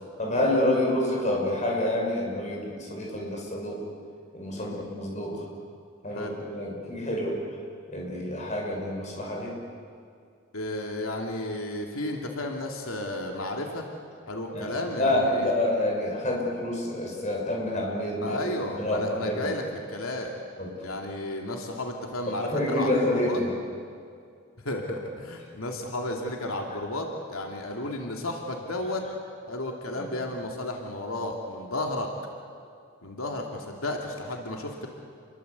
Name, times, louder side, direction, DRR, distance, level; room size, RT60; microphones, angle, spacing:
voice 1, 0.2-3.9 4.3-5.4 6.0-7.4 7.9-9.6 14.5-19.5 20.6-20.7 22.3-23.5 29.9-30.0, left 1 dB, 35° left, -1 dB, 6.3 m, -28 dB
voice 2, 10.5-13.9 14.3-15.5 18.2-19.6 19.9-20.3 20.8-23.4 24.6-29.0 29.5-32.1 33.0-34.9, left 1 dB, 90° left, 1 dB, 2.8 m, -33 dB
29.5 x 22.5 x 8.2 m, 2.4 s
head